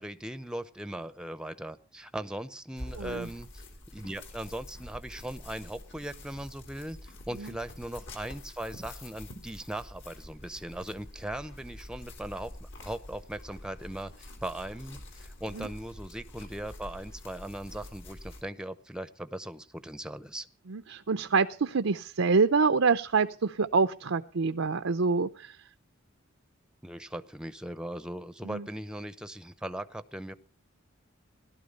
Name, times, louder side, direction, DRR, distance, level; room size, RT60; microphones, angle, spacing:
voice 1, 0.0-3.6 3.9-20.5 26.8-30.3, right 1 dB, 5° right, 13 dB, 0.8 m, -39 dB
sound 1, 2.8-18.4, left 1 dB, 60° left, 3.7 m, -46 dB
voice 2, 3.0-3.3 7.4-7.5 15.6-15.7 20.7-25.6 28.4-28.6, right 4 dB, 75° right, 9 dB, 0.6 m, -26 dB
18.0 x 12.0 x 5.4 m, 0.40 s
head